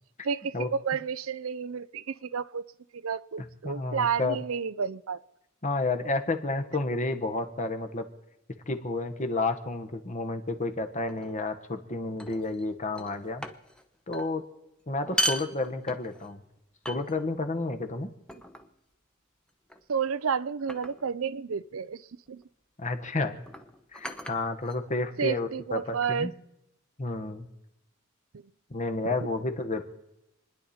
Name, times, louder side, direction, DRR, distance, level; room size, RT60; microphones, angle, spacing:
voice 1, 0.2-2.6 2.9-5.2 19.9-22.4 25.2-26.3, right 6 dB, 75° right, 16 dB, 0.5 m, -31 dB
voice 2, 3.6-4.4 5.6-8.0 8.7-13.4 14.1-14.4 14.9-16.4 16.9-18.1 22.8-23.4 23.9-26.3 27.0-27.5 28.7-29.8, left 2 dB, 35° left, 7 dB, 1.4 m, -31 dB
sound 1, 11.1-11.4 12.2-12.6 12.9-13.8 14.1-14.3 14.9-16.3 16.8-17.4 18.3-18.7 19.7-20.0 20.7-21.1 22.3-22.4 23.4-25.1, equal, 5° left, 0.9 m, -36 dB
28.5 x 10.5 x 4.3 m, 0.90 s
head